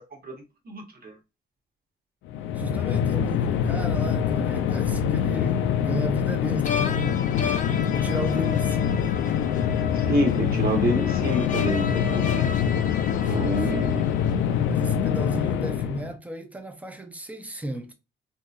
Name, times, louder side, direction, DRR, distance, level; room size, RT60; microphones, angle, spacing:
voice 1, 0.6-1.1 9.9-12.3 13.2-14.1, right 1 dB, 50° right, 1.4 m, -27 dB
sound 1, 2.3-16.1, left 8 dB, 85° left, 0.5 m, -25 dB
voice 2, 2.5-7.2 7.8-9.5 13.3-13.7 14.7-17.9, right 1 dB, 5° right, 0.7 m, -34 dB
sound 2, 6.6-14.8, left 6 dB, 40° left, 0.6 m, -34 dB
3.6 x 2.8 x 2.6 m
cardioid pair, 90°, 20 cm